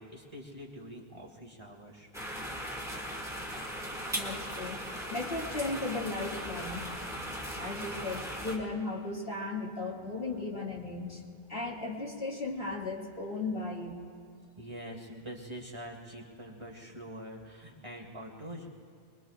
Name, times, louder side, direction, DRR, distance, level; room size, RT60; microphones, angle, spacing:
voice 1, 0.0-2.1 14.6-18.7, equal, 25° right, -1 dB, 2.0 m, -45 dB
sound 1, 2.1-8.6, equal, 5° right, 2.0 m, -38 dB
voice 2, 4.1-7.1 7.6-11.2 11.5-14.0, left 3 dB, 65° left, -3 dB, 2.4 m, -36 dB
25.0 x 22.0 x 2.4 m, 2.3 s
omnidirectional pair, 1.0 m